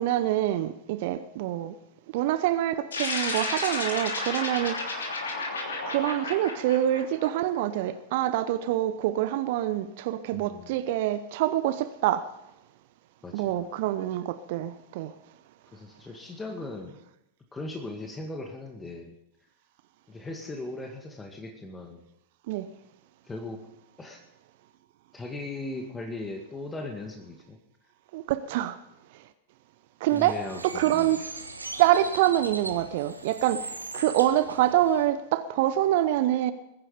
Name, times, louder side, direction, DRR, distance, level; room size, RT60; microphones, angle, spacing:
voice 1, 0.0-1.7 2.1-5.1 5.8-12.3 13.3-15.1 22.5-22.7 28.1-28.8 29.1-29.2 30.0-31.3 31.8-36.5, right 13 dB, 50° right, 0.8 m, -26 dB
sound 1, 2.9-7.6, left 3 dB, 70° left, 2.9 m, -32 dB
voice 2, 10.3-10.8 13.2-13.6 15.7-17.0 17.5-19.2 20.1-22.0 23.2-23.6 24.0-24.2 25.1-27.6 30.1-31.2, left 2 dB, 15° left, 2.1 m, -38 dB
Bird, 30.1-35.1, right 2 dB, 80° right, 1.4 m, -40 dB
21.5 x 10.0 x 5.1 m
figure-of-eight pair, 90°, 0 cm